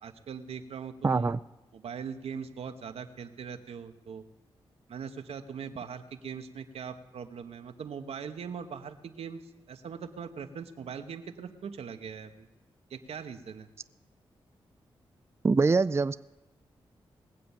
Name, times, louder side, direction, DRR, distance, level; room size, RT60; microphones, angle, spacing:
voice 1, 0.0-1.4 1.7-4.2 4.9-9.4 9.7-12.5 12.9-13.7, right 6 dB, 80° right, 7 dB, 1.0 m, -41 dB
voice 2, 1.0-1.4 15.4-16.2, right 4 dB, 25° right, 13 dB, 0.4 m, -24 dB
20.0 x 7.7 x 7.1 m, 1.1 s
cardioid pair, 50°, 10 cm